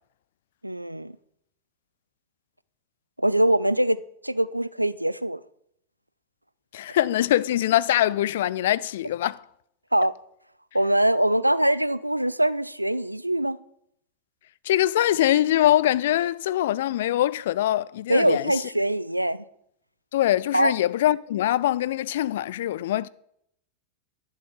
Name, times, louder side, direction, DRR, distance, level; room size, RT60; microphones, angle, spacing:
voice 1, 0.6-1.1 3.2-4.0 4.2-5.4 9.9-10.1 10.7-13.6 18.1-19.4 20.5-20.7, right 1 dB, 85° right, 0.3 m, -23 dB
voice 2, 6.7-9.4 14.6-18.6 20.1-23.1, left 13 dB, 55° left, 0.3 m, -23 dB
11.0 x 7.5 x 5.4 m
figure-of-eight pair, 90°, 0 cm